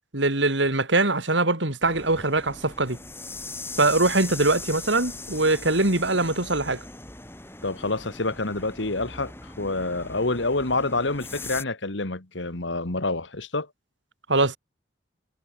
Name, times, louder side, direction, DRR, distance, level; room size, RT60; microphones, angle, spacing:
voice 1, 0.1-3.0 3.8-6.8 14.3-14.6, right 2 dB, 75° right, 3.5 m, -22 dB
sound 1, 1.8-11.6, left 3 dB, 10° left, 5.8 m, -40 dB
voice 2, 7.6-13.7, left 2 dB, 75° left, 2.2 m, -27 dB
head